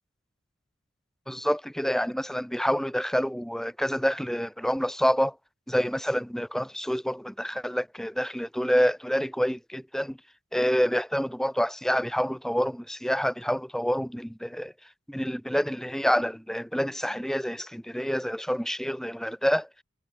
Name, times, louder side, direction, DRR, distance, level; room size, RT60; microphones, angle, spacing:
voice 1, 1.3-5.3 5.7-10.2 10.5-14.7 15.1-19.7, equal, ahead, 3.4 m, -27 dB
head